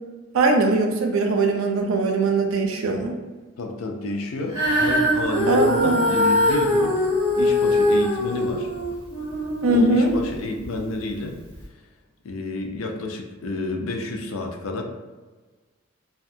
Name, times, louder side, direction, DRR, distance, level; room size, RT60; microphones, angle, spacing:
voice 1, 0.3-3.1 5.5-6.0 9.6-10.1, right 2 dB, 85° right, 3 dB, 0.4 m, -20 dB
voice 2, 3.6-7.0 7.3-8.7 9.7-11.4 12.2-14.8, left 2 dB, 80° left, 3 dB, 0.4 m, -30 dB
Female singing, 4.5-10.8 11.5-11.6, left 1 dB, 25° right, 1.1 m, -22 dB
2.7 x 2.2 x 2.5 m, 1.3 s
head